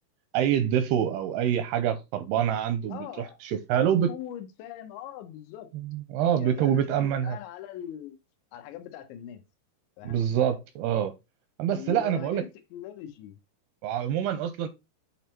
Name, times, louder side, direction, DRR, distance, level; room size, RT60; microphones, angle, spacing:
voice 1, 0.3-4.1 5.9-7.4 10.0-11.1 11.6-12.4 13.8-14.7, right 9 dB, 85° right, 2.3 m, -26 dB
voice 2, 2.9-3.4 3.7-5.7 6.4-8.2 8.5-9.4 10.0-10.3 11.7-13.4, left 11 dB, 85° left, 3.3 m, -41 dB
8.5 x 3.5 x 4.3 m
omnidirectional pair, 5.1 m